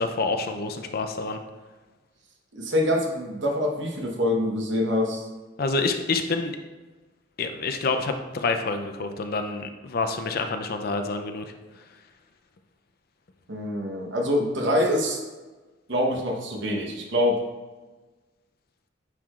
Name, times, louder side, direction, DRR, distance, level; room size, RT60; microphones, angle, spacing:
voice 1, 0.0-1.4 5.6-6.5 7.4-11.5, left 3 dB, 55° left, 7 dB, 0.5 m, -27 dB
voice 2, 2.5-5.3 13.5-15.2 15.9-17.4, left 1 dB, 65° right, 1 dB, 1.1 m, -25 dB
9.0 x 4.7 x 2.4 m, 1.2 s
head